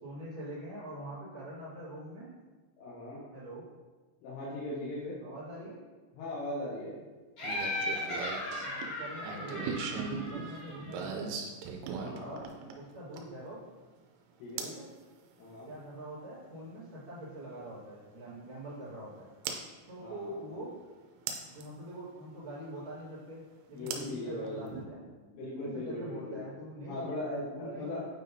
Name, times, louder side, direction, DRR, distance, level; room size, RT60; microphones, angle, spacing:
voice 1, 0.0-2.3 3.3-3.6 5.2-5.8 8.6-9.7 10.0-11.3 12.2-12.5 12.7-13.6 14.6-14.9 15.7-19.3 19.9-20.7 21.5-25.0 25.6-27.1 27.5-28.0, right 1 dB, 70° right, -12 dB, 1.2 m, -44 dB
voice 2, 2.8-3.2 4.2-5.2 6.1-7.0 11.9-12.3 14.4-14.7 15.4-15.7 20.0-20.4 23.7-24.7 25.2-26.5 26.9-28.0, left 1 dB, 85° left, -7 dB, 3.5 m, -39 dB
Laughter, 7.4-11.0, left 1 dB, 50° left, 2.8 m, -37 dB
sound 1, 7.4-13.4 14.6-14.8 16.7-16.8 19.5-19.6 21.3-21.7 23.9-24.9, right 5 dB, 90° right, 3.2 m, -39 dB
8.8 x 4.1 x 2.7 m, 1.3 s
omnidirectional pair, 5.6 m